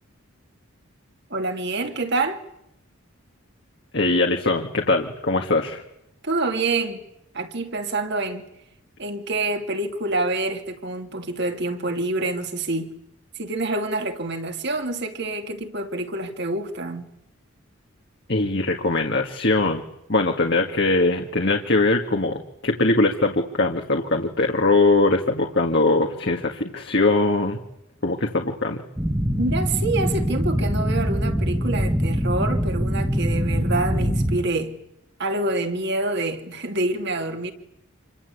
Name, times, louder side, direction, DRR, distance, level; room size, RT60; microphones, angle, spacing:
voice 1, 1.3-2.4 6.2-7.0 7.3-8.4 9.0-12.9 13.4-17.1 29.4-34.8 35.2-37.5, right 2 dB, 50° right, 2.5 m, -27 dB
voice 2, 3.9-5.8 18.3-19.8 20.1-27.6 28.0-28.8, left 2 dB, 50° left, 1.9 m, -21 dB
sound 1, 29.0-34.4, equal, 10° right, 1.5 m, -23 dB
27.5 x 23.5 x 8.4 m
head